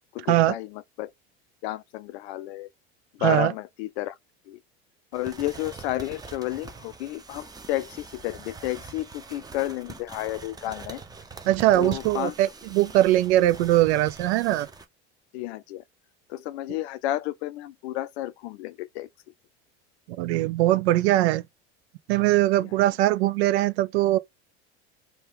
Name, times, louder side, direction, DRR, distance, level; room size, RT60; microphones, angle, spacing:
voice 1, 0.1-1.1 1.6-2.7 3.1-4.1 4.5-4.6 5.1-11.0 11.7-12.3 15.3-15.8 16.3-19.1 22.6-22.7, left 15 dB, 80° left, 0.5 m, -32 dB
sound 1, 5.1-14.8, right 4 dB, 10° right, 0.6 m, -43 dB
voice 2, 11.4-14.7 20.2-21.4 22.1-24.2, right 15 dB, 85° right, 0.5 m, -21 dB
2.8 x 2.2 x 3.3 m
supercardioid pair, 105°, 32 cm